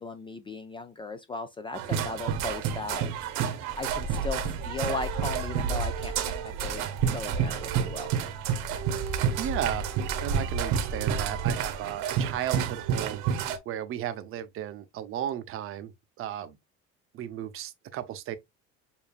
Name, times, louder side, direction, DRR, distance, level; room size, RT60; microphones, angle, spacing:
voice 1, 0.0-3.3 3.8-8.1, left 3 dB, 20° left, 0.3 m, -37 dB
sound 1, 1.7-13.6, right 7 dB, 80° right, 1.0 m, -29 dB
voice 2, 9.4-9.8 10.2-15.9 16.2-16.6 17.1-18.4, right 11 dB, 45° right, 0.6 m, -34 dB
7.0 x 2.6 x 2.4 m
cardioid pair, 140°, 30 cm